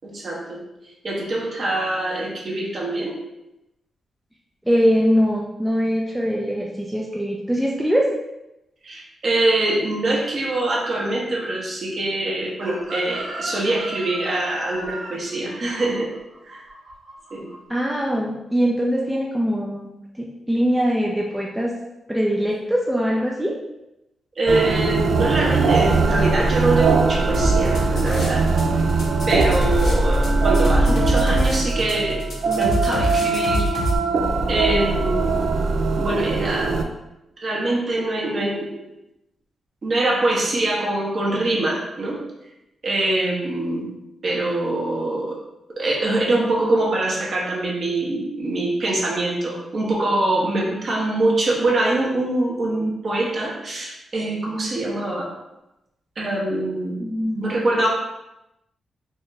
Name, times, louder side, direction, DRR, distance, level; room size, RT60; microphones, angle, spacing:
voice 1, 0.0-0.6 1.0-3.2 8.8-16.1 16.4-16.6 17.3-17.5 24.4-28.4 29.3-33.6 34.5-35.4 36.0-36.8 37.4-38.7 39.8-42.2 42.8-43.9 44.2-45.4 45.8-55.3 56.2-57.0 57.3-57.9, right 2 dB, 45° right, -3 dB, 1.1 m, -24 dB
voice 2, 4.7-8.0 17.7-19.9 20.2-21.7 22.1-23.5 57.0-57.4, equal, 5° right, -3 dB, 0.5 m, -22 dB
Chicken rooster, 12.6-17.6 17.8-18.2, right 1 dB, 85° right, 1.0 m, -35 dB
sound 1, 24.5-36.8, right 3 dB, 65° right, 0.3 m, -21 dB
sound 2, 27.3-28.6 28.9-34.0, right 1 dB, 65° left, 1.1 m, -24 dB
4.1 x 2.5 x 3.1 m, 0.91 s
cardioid pair, 110°, 0 cm